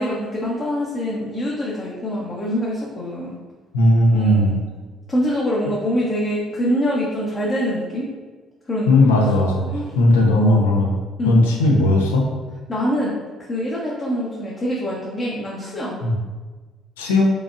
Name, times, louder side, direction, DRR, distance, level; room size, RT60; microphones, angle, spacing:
voice 1, 0.0-3.3 4.1-4.6 5.1-8.1 8.7-9.2 9.7-10.0 10.3-10.7 11.2-11.4 12.7-16.0, equal, 30° left, -5 dB, 0.9 m, -25 dB
voice 2, 3.7-4.5 5.7-5.8 8.9-11.0 11.2-12.3 16.0-16.2 17.0-17.3, left 1 dB, 75° left, 0 dB, 0.7 m, -17 dB
4.9 x 3.5 x 2.5 m, 1.3 s
figure-of-eight pair, 45°, 0 cm